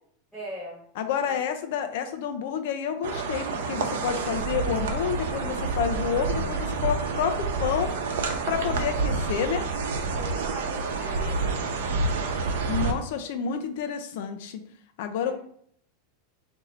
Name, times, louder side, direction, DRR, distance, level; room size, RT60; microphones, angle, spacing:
voice 1, 0.3-0.8 1.3-1.4 10.1-11.7 15.2-15.3, right 1 dB, ahead, -11 dB, 1.2 m, -40 dB
voice 2, 1.0-7.9 8.5-9.7 12.7-14.6 15.0-15.3, left 7 dB, 60° left, 7 dB, 0.5 m, -29 dB
sound 1, 3.0-12.9, right 4 dB, 85° right, 0.7 m, -28 dB
3.9 x 2.7 x 4.2 m, 0.64 s
supercardioid pair, 165°, 0 cm